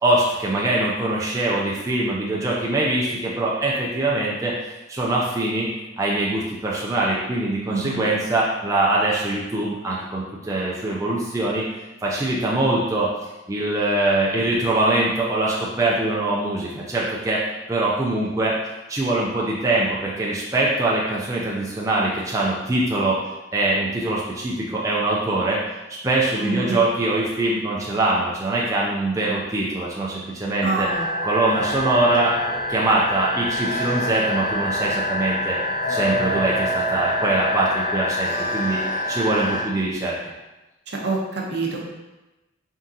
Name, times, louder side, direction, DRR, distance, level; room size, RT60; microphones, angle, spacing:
voice 1, 0.0-4.6 4.9-5.7 6.0-11.7 12.0-13.1 13.5-17.4 17.7-18.6 18.9-23.2 23.5-25.6 26.0-30.9 31.2-32.3 32.7-35.6 35.9-38.8 39.1-40.3, right 2 dB, 15° right, -4 dB, 0.4 m, -23 dB
voice 2, 7.7-8.0 26.4-26.8 30.6-31.0 40.9-41.8, right 3 dB, 60° right, -2 dB, 0.7 m, -26 dB
sound 1, 30.8-39.6, left 1 dB, 45° left, 0.8 m, -25 dB
3.6 x 3.6 x 2.7 m, 1.1 s
head